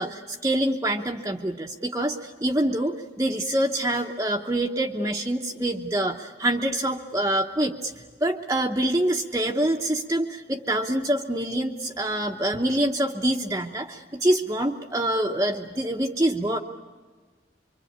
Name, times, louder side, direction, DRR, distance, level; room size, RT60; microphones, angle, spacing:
voice 1, 0.0-7.9 8.2-16.6, right 1 dB, 15° right, 1 dB, 1.0 m, -25 dB
25.0 x 25.0 x 8.8 m, 1.4 s
head